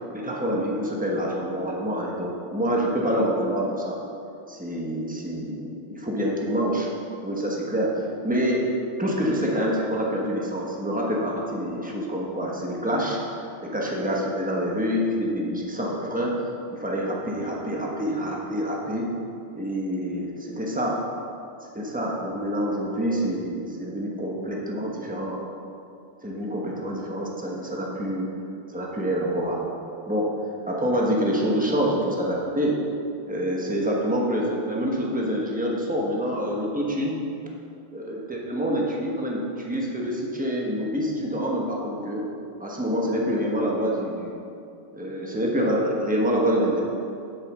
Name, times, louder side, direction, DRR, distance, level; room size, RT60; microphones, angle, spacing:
voice 1, 0.1-4.0 4.5-6.9 7.2-8.7 9.0-16.3 16.7-19.1 19.5-21.0 21.7-25.4 26.2-28.3 28.7-29.7 30.1-30.3 30.7-32.8 33.3-37.2 37.9-42.3 42.6-44.4 44.9-46.8, equal, 15° right, -2 dB, 0.3 m, -26 dB
7.9 x 7.7 x 6.1 m, 2.6 s
omnidirectional pair, 2.4 m